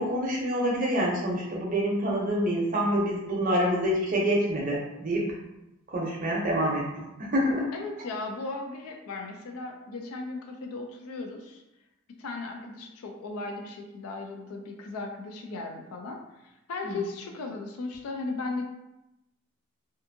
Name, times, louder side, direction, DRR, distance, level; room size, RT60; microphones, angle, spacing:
voice 1, 0.0-5.3 5.9-6.8 7.2-7.7 16.8-17.0, equal, 35° right, -3 dB, 0.6 m, -26 dB
voice 2, 7.7-11.6 12.2-18.6, left 3 dB, 75° left, 3 dB, 0.4 m, -36 dB
2.5 x 2.5 x 2.6 m, 0.92 s
head